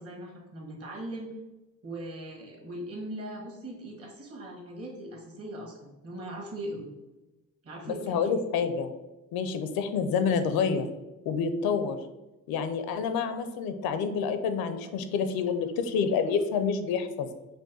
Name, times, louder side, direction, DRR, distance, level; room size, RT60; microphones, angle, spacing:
voice 1, 0.0-1.3 1.8-6.9 7.6-8.2 14.8-15.0 15.4-15.5, right 1 dB, 40° right, -1 dB, 1.5 m, -40 dB
voice 2, 7.9-8.9 9.3-10.9 11.3-12.0 12.5-17.3, left 6 dB, 80° left, 9 dB, 0.6 m, -28 dB
5.2 x 2.2 x 4.0 m, 1.0 s
cardioid pair, 120°, 35 cm